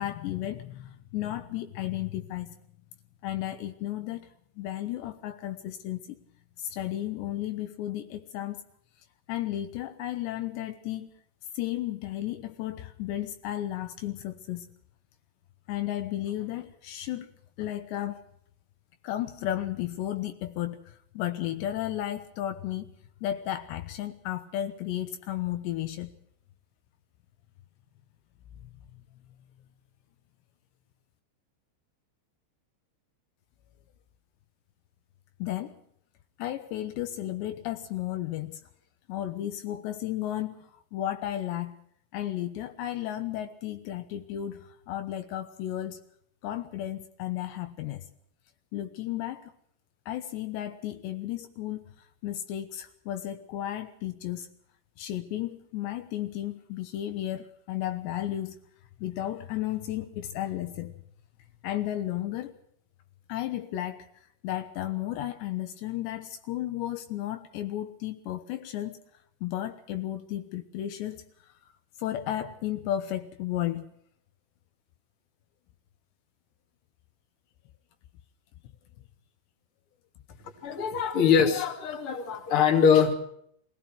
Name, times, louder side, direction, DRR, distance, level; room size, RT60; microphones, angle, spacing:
voice 1, 0.0-2.5 3.2-4.3 4.6-6.2 6.6-8.6 9.3-11.1 11.5-14.7 15.7-17.3 17.6-18.2 19.0-22.9 23.2-26.1 35.4-35.8 36.4-38.6 39.1-41.7 42.1-46.0 46.4-48.0 48.7-49.5 50.1-51.8 52.2-54.5 55.0-58.6 59.0-60.9 61.6-62.5 63.3-64.1 64.4-69.0 69.4-71.5 72.0-73.9, left 13 dB, 75° left, 8 dB, 3.2 m, -33 dB
voice 2, 80.6-83.1, left 7 dB, 35° left, 4 dB, 2.7 m, -22 dB
24.5 x 17.5 x 6.2 m, 0.68 s
omnidirectional pair, 5.3 m